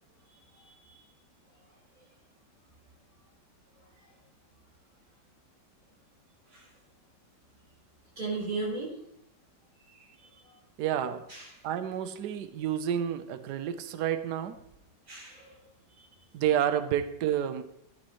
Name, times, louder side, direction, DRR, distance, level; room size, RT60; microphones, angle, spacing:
voice 1, 0.5-1.0 6.5-6.7 8.2-8.9 9.9-10.6 11.3-11.5 15.1-15.6 16.0-16.1, right 3 dB, 50° right, -5 dB, 5.2 m, -37 dB
voice 2, 10.8-11.2 11.6-14.6 16.3-17.6, right 10 dB, 70° right, 11 dB, 1.3 m, -29 dB
13.0 x 9.3 x 3.1 m, 0.76 s
omnidirectional pair, 2.0 m